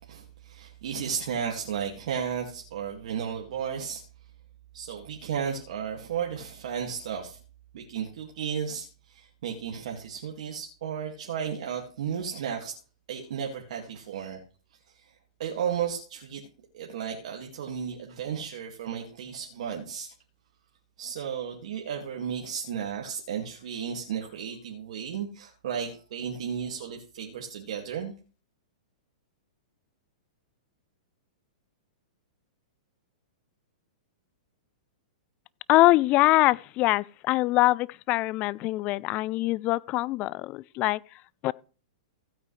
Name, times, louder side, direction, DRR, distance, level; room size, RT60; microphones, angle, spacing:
voice 1, 0.0-4.0 4.7-7.4 7.7-12.7 13.1-14.4 14.9-15.1 15.4-16.4 16.7-20.1 21.0-28.1, right 7 dB, 65° right, 2.2 m, -34 dB
voice 2, 35.7-41.0 41.4-41.5, left 18 dB, 35° left, 0.4 m, -23 dB
15.5 x 9.0 x 3.3 m
hypercardioid pair, 125°, 4 cm